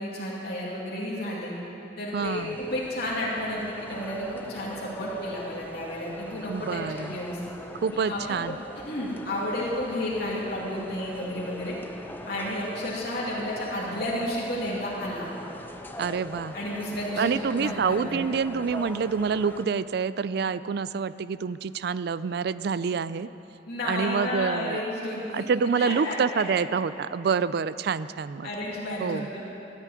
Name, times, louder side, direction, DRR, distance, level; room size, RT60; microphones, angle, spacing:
voice 1, 0.0-1.5 2.0-7.4 7.9-8.5 8.9-11.8 12.2-15.3 16.5-18.3 23.7-25.5 25.8-26.4 28.4-29.4, left 1 dB, 60° left, -6 dB, 2.6 m, -32 dB
voice 2, 2.1-2.6 6.5-7.2 7.8-8.6 16.0-16.5 17.2-23.3 23.9-24.8 25.3-28.5 29.0-29.3, right 5 dB, 60° right, 16 dB, 0.4 m, -27 dB
sound 1, 2.2-19.7, left 1 dB, 10° left, 0.7 m, -42 dB
13.5 x 8.3 x 9.8 m, 3.0 s
head